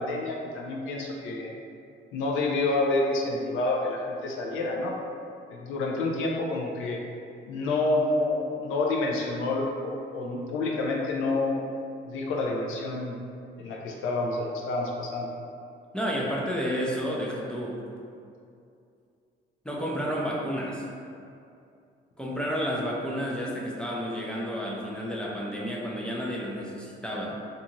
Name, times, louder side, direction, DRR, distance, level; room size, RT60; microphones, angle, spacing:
voice 1, 0.0-1.5 2.1-5.0 5.5-7.0 7.5-11.7 12.0-13.1 13.6-15.3, left 2 dB, 90° left, -1 dB, 0.4 m, -28 dB
voice 2, 15.9-17.8 19.6-20.9 22.2-27.4, equal, 5° left, -4 dB, 0.4 m, -31 dB
2.6 x 2.3 x 2.8 m, 2.5 s
cardioid pair, 90°, 20 cm